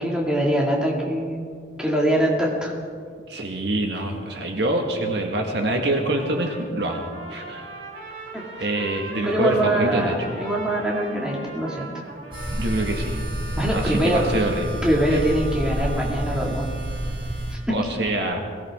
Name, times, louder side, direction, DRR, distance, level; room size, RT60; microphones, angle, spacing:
voice 1, 0.0-1.5 1.8-2.7 8.3-8.4 9.2-11.9 13.6-16.7 17.5-17.8, right 1 dB, 5° right, -3 dB, 2.3 m, -23 dB
voice 2, 3.3-7.0 7.3-7.7 8.6-10.1 12.6-13.2 13.7-14.8 15.1-15.2 17.7-18.4, right 1 dB, 60° right, 2 dB, 1.8 m, -25 dB
Trumpet, 6.1-13.2, right 2 dB, 80° right, 4.8 m, -38 dB
sound 1, 12.3-17.6, right 1 dB, 30° right, 3.4 m, -29 dB
22.0 x 17.0 x 3.7 m, 2.1 s
head